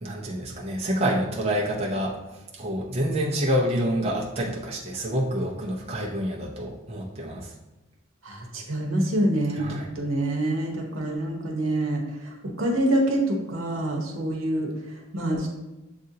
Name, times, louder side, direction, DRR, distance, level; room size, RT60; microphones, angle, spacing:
voice 1, 0.0-7.5 9.5-9.9, equal, 30° right, -4 dB, 0.6 m, -27 dB
voice 2, 8.2-14.7 15.1-15.5, right 1 dB, 85° right, 0 dB, 0.9 m, -26 dB
7.5 x 2.5 x 2.7 m, 1.0 s
head